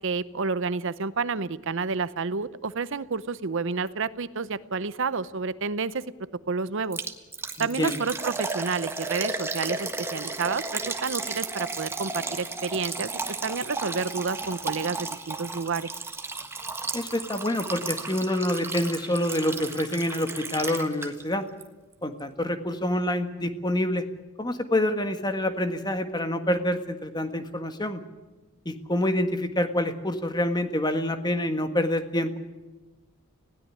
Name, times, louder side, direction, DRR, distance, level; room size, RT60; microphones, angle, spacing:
voice 1, 0.0-6.0 6.5-7.0 7.6-13.1 13.4-15.9, right 4 dB, 60° right, 15 dB, 0.7 m, -30 dB
Liquid, 6.9-21.3 21.6-21.7 22.2-22.3, right 3 dB, 10° right, 1.5 m, -34 dB
voice 2, 7.6-8.0 16.9-21.4 22.0-24.1 24.4-28.0 28.6-32.4, left 1 dB, 20° left, 8 dB, 1.6 m, -27 dB
20.5 x 17.0 x 9.7 m, 1.1 s
head